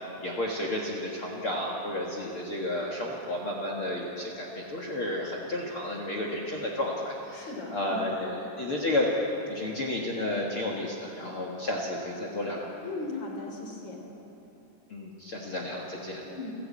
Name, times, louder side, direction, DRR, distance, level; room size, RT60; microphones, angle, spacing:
voice 1, 0.2-9.1 9.5-12.7 14.9-16.2, left 1 dB, 60° left, -1 dB, 1.4 m, -32 dB
voice 2, 7.3-8.1 12.8-14.0 16.2-16.6, left 2 dB, 30° left, 1 dB, 3.3 m, -37 dB
29.5 x 11.0 x 8.6 m, 2.9 s
omnidirectional pair, 5.1 m